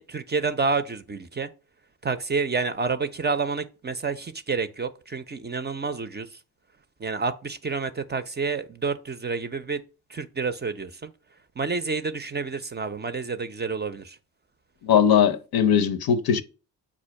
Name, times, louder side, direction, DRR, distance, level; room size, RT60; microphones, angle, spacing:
voice 1, 0.0-1.5 2.0-6.4 7.0-9.8 10.1-11.1 11.6-14.2, right 4 dB, 25° right, 0.4 m, -29 dB
voice 2, 14.8-16.4, left 8 dB, 60° left, 0.6 m, -20 dB
4.2 x 2.5 x 4.6 m
supercardioid pair, 45°, 41 cm